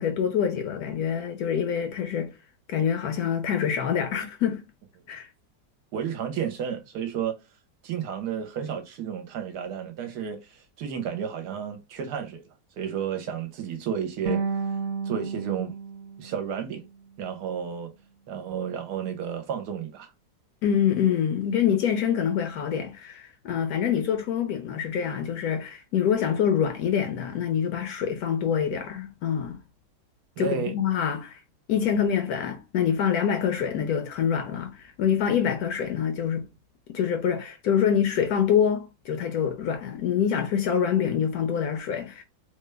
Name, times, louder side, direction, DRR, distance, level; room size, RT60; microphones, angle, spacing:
voice 1, 0.0-2.4 2.7-4.6 5.1-5.3 20.6-29.6 30.4-31.4 31.7-36.5 36.9-42.2, left 8 dB, 70° left, 0.9 m, -25 dB
voice 2, 5.9-7.4 7.8-12.4 12.8-14.4 15.0-15.8 16.2-16.9 17.2-17.9 18.3-20.1 30.4-30.7, right 8 dB, 70° right, 1.1 m, -32 dB
sound 1, 14.3-17.4, right 4 dB, 90° right, 0.6 m, -32 dB
3.2 x 2.2 x 3.2 m
omnidirectional pair, 1.9 m